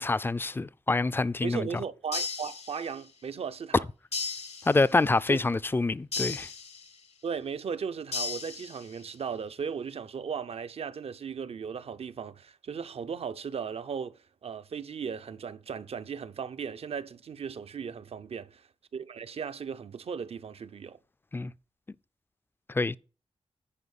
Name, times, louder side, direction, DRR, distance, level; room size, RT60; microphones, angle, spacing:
voice 1, 0.0-1.7 4.7-6.5 21.3-21.5 22.7-23.0, left 3 dB, 20° left, 0.4 m, -26 dB
voice 2, 1.4-3.9 5.3-5.4 7.2-18.7 18.9-21.0, right 6 dB, 65° right, 0.6 m, -36 dB
sound 1, 2.1-3.2 4.1-5.2 6.1-7.2 8.1-9.2, left 5 dB, 80° left, 1.1 m, -36 dB
10.0 x 4.7 x 7.0 m
cardioid pair, 80°, 11 cm